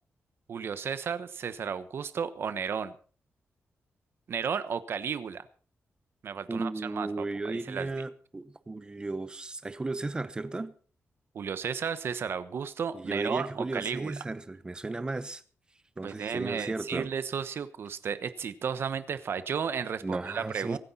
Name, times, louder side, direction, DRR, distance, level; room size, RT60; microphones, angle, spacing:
voice 1, 0.5-2.9 4.3-5.5 6.2-7.1 7.4-7.9 11.3-14.1 16.0-20.8, right 7 dB, 55° right, 1.1 m, -33 dB
voice 2, 6.5-10.7 12.9-15.4 16.0-17.1 20.0-20.8, right 2 dB, 20° right, 0.9 m, -35 dB
24.5 x 9.8 x 4.3 m
wide cardioid pair, 180°, 5 cm